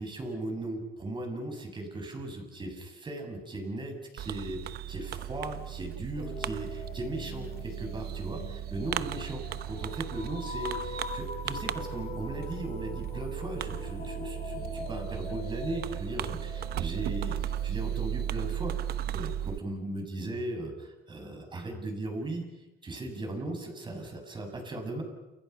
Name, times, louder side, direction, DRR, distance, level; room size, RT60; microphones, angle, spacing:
voice 1, 0.0-22.5 22.8-25.0, right 2 dB, 30° right, 4 dB, 7.5 m, -37 dB
Fireworks, 4.2-19.6, right 11 dB, 70° right, 0.9 m, -36 dB
sound 1, 6.2-18.9, left 4 dB, 40° left, 4.7 m, -43 dB
29.5 x 29.5 x 6.0 m, 1.0 s
cardioid pair, 110°, 17 cm